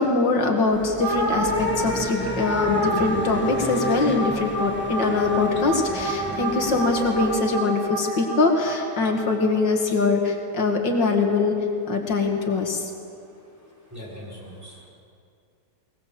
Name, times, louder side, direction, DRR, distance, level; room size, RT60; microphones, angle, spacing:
voice 1, 0.0-11.5 11.9-12.9, left 3 dB, 80° left, 3 dB, 2.6 m, -23 dB
sound 1, 0.7-7.4, equal, 5° left, 1.4 m, -34 dB
sound 2, 1.0-9.6, right 1 dB, 80° right, 6.2 m, -28 dB
voice 2, 13.2-14.9, equal, 10° right, -5 dB, 6.0 m, -42 dB
20.5 x 20.5 x 7.6 m, 2.4 s
omnidirectional pair, 1.9 m